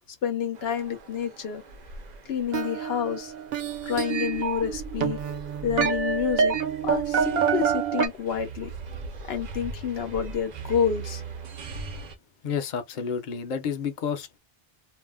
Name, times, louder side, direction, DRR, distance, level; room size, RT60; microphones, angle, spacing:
voice 1, 0.2-1.6 2.3-3.3 3.8-5.2 5.6-6.6 6.8-8.7 9.3-11.2, left 8 dB, 90° left, 0.9 m, -28 dB
sound 1, 0.6-12.2, right 4 dB, 55° right, 0.6 m, -41 dB
sound 2, 2.5-8.1, right 7 dB, 75° right, 1.0 m, -27 dB
voice 2, 12.4-14.4, left 6 dB, 55° left, 0.7 m, -30 dB
2.6 x 2.0 x 3.4 m
omnidirectional pair, 1.0 m